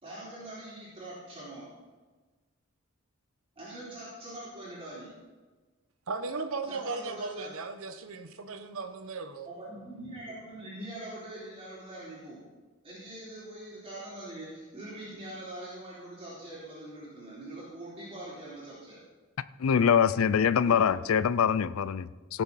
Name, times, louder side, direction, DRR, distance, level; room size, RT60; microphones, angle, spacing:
voice 1, 0.0-1.8 3.6-5.2 6.6-7.5 9.4-12.4 12.8-19.0 20.6-21.1, right 1 dB, 25° right, -9 dB, 3.7 m, -43 dB
voice 2, 6.1-9.5, right 4 dB, 75° right, 8 dB, 1.0 m, -36 dB
voice 3, 19.6-22.4, left 7 dB, 80° left, 16 dB, 0.4 m, -24 dB
17.5 x 6.9 x 4.2 m, 1.3 s
head